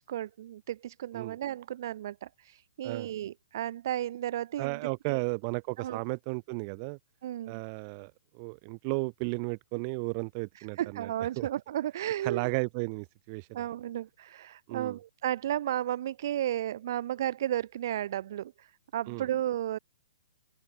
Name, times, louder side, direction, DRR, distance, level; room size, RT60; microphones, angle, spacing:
voice 1, 0.1-5.2 5.8-6.0 7.2-7.6 10.5-12.5 13.5-19.8, right 12 dB, 50° right, 1.8 m, -34 dB
voice 2, 4.6-7.0 7.5-8.1 8.4-11.1 11.4-11.5 12.2-13.7 14.7-15.0 19.1-19.3, right 35 dB, 30° right, 5.8 m, -34 dB
open air
hypercardioid pair, 150°, 2 cm